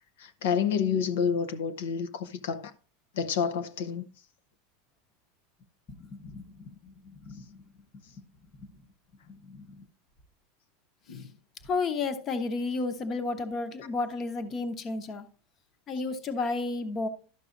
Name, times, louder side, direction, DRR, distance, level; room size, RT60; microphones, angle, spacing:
voice 1, 0.2-2.7 3.1-4.1 11.1-11.2, left 7 dB, 85° left, 0.7 m, -29 dB
voice 2, 6.0-7.6 8.6-8.7 9.3-9.9 11.6-15.3 15.9-17.1, left 3 dB, 25° left, 0.9 m, -33 dB
12.0 x 6.1 x 2.5 m
supercardioid pair, 155°, 0 cm